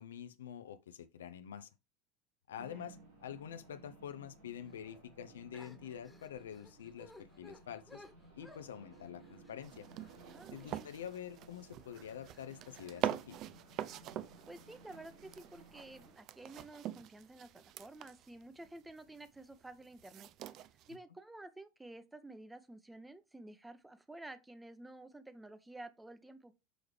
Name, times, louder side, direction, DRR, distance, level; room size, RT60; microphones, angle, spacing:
voice 1, 0.0-1.7 2.5-8.0 8.4-9.9 10.5-13.4, left 9 dB, 70° left, 0.5 m, -47 dB
voice 2, 2.6-2.9 10.3-10.9 14.5-20.3 20.9-26.5, right 2 dB, 10° right, 0.8 m, -52 dB
sound 1, 2.6-16.1, right 2 dB, 75° right, 3.2 m, -59 dB
sound 2, 4.7-5.0 5.5-11.2 11.6-11.8 12.2-13.1, left 2 dB, 5° left, 1.3 m, -59 dB
sound 3, 9.6-21.0, right 12 dB, 45° right, 0.4 m, -44 dB
6.3 x 4.6 x 3.2 m
figure-of-eight pair, 75°, 0 cm